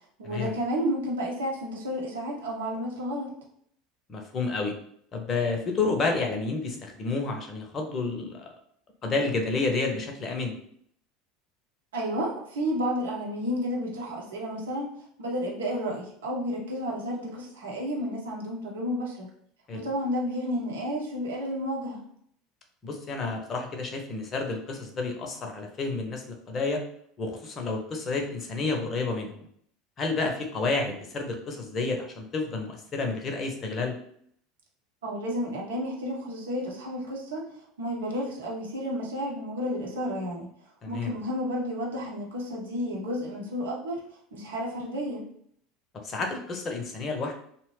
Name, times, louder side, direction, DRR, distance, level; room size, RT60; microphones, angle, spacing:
voice 1, 0.2-3.3 11.9-14.9 15.2-19.3 19.7-22.0 35.0-37.4 37.8-40.5 40.9-44.0 44.3-45.2, equal, 75° right, -2 dB, 0.8 m, -31 dB
voice 2, 4.1-4.7 5.1-8.5 9.0-10.5 19.7-19.9 22.8-26.8 27.2-29.4 30.0-33.9 40.8-41.2 46.0-47.3, left 3 dB, 35° left, 3 dB, 0.6 m, -30 dB
2.8 x 2.0 x 3.1 m, 0.66 s
figure-of-eight pair, 75°, 0 cm